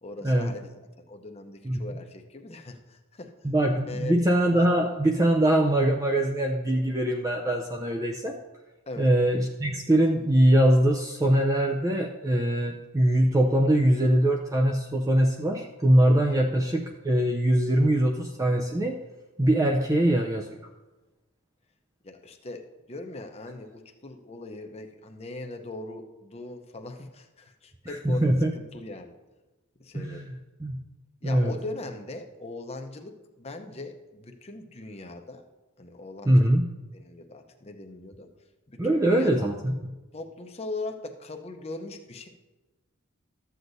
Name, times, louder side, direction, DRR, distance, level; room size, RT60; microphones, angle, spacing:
voice 1, 0.0-3.3 3.9-4.2 8.9-9.1 16.3-16.4 22.0-29.1 29.8-30.3 31.2-35.4 35.8-36.5 36.9-38.3 38.7-39.5 40.1-42.3, left 2 dB, 30° left, 5 dB, 0.7 m, -40 dB
voice 2, 3.4-8.4 9.0-19.0 19.4-20.5 27.9-28.5 29.9-30.3 30.6-30.8 31.2-31.5 36.3-36.7 38.8-39.7, right 1 dB, 15° right, 2 dB, 0.4 m, -22 dB
13.0 x 7.9 x 2.6 m, 1.1 s
head